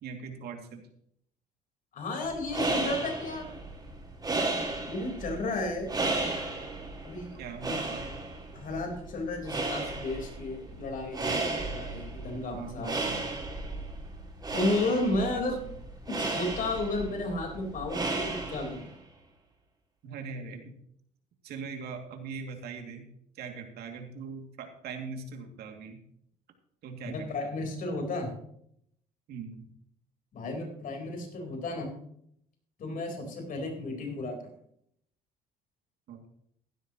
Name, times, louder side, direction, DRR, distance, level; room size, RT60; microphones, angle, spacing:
voice 1, 0.0-0.8 7.3-8.1 12.5-13.5 15.3-15.4 20.0-20.7 21.4-23.1 23.3-26.0 26.8-27.5 29.3-29.7 36.1-36.3, right 5 dB, 70° right, 3 dB, 2.5 m, -41 dB
voice 2, 1.9-3.6 4.9-5.9 7.0-7.4 7.7-7.8 8.5-13.1 14.5-15.6 16.1-18.8 27.1-28.3 30.3-31.9 32.8-34.4, left 2 dB, 55° left, 3 dB, 4.2 m, -33 dB
sound 1, 2.3-18.9, right 2 dB, 20° right, 4.5 m, -34 dB
15.5 x 12.0 x 3.0 m, 0.70 s
cardioid pair, 110°, 17 cm